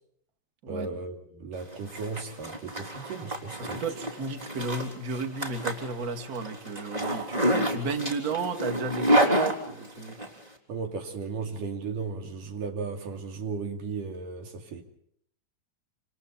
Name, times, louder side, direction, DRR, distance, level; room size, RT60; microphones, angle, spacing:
voice 1, 0.7-3.8 10.7-14.8, right 4 dB, 85° right, 4.2 m, -35 dB
Zipper (clothing), 1.6-10.3, right 1 dB, 10° right, 3.4 m, -29 dB
voice 2, 3.6-10.2, right 3 dB, 30° right, 2.3 m, -33 dB
28.0 x 27.0 x 4.2 m
omnidirectional pair, 3.7 m